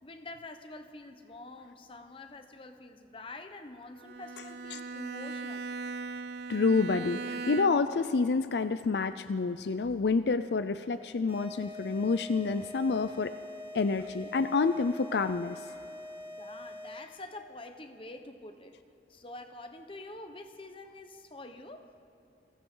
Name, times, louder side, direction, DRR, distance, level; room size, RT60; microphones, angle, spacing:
voice 1, 0.0-5.7 16.4-18.8 19.1-21.9, left 2 dB, 30° left, 7 dB, 1.2 m, -46 dB
Bowed string instrument, 4.0-8.0, right 4 dB, 60° right, 0.6 m, -39 dB
voice 2, 6.5-13.3 13.7-15.6, left 4 dB, 70° left, 11 dB, 0.5 m, -28 dB
sound 1, 11.3-17.2, left 1 dB, 15° right, 5.5 m, -44 dB
29.5 x 23.0 x 3.9 m, 2.7 s
head